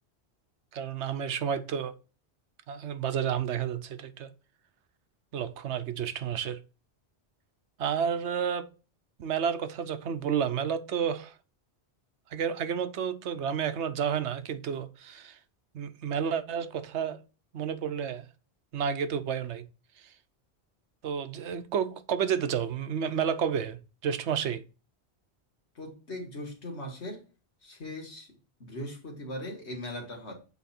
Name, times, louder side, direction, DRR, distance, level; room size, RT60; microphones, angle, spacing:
voice 1, 0.7-1.9 2.7-4.3 5.3-6.6 7.8-8.7 9.2-11.3 12.3-15.4 15.7-17.2 17.5-18.3 18.7-19.7 21.0-24.6, right 8 dB, 85° right, 1.1 m, -31 dB
voice 2, 25.8-27.2 27.6-28.3 28.6-30.3, left 1 dB, 80° left, 2.3 m, -39 dB
8.3 x 4.0 x 4.3 m
omnidirectional pair, 1.1 m